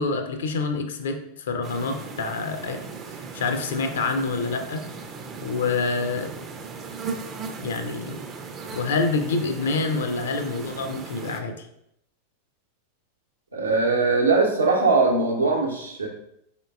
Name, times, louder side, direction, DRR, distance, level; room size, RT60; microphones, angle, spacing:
voice 1, 0.0-2.8 3.1-4.9 5.4-6.3 7.6-8.2 8.7-11.7, left 4 dB, 60° left, 6 dB, 0.5 m, -27 dB
sound 1, 1.6-11.4, right 5 dB, 25° right, 0.4 m, -37 dB
voice 2, 13.5-16.1, right 3 dB, 75° right, 0 dB, 0.8 m, -21 dB
3.8 x 3.7 x 2.3 m, 0.77 s
figure-of-eight pair, 90°, 0 cm